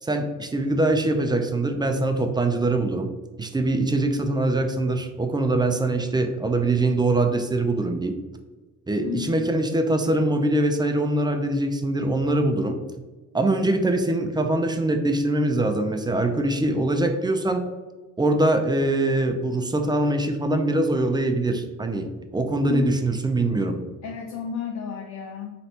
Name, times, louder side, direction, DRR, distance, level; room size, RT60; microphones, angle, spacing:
voice 1, 0.0-3.1 3.4-8.2 8.9-12.8 13.3-17.6 18.2-23.8, right 2 dB, 15° right, 5 dB, 0.4 m, -23 dB
voice 2, 9.0-9.3 22.7-22.9 24.0-25.5, left 6 dB, 65° left, 2 dB, 0.6 m, -32 dB
4.1 x 3.1 x 2.9 m, 1.3 s
cardioid pair, 90°, 30 cm